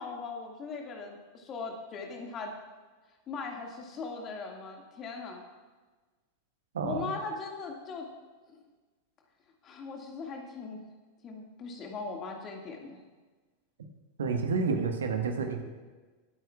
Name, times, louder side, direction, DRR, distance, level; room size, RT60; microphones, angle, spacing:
voice 1, 0.0-2.5 3.3-5.4 6.8-8.1 9.6-10.8 11.2-13.0, left 4 dB, 30° left, 2 dB, 1.9 m, -39 dB
voice 2, 6.7-7.1 14.2-15.6, right 5 dB, 65° right, 5 dB, 1.3 m, -29 dB
22.5 x 9.2 x 2.3 m, 1.3 s
figure-of-eight pair, 90°, 0 cm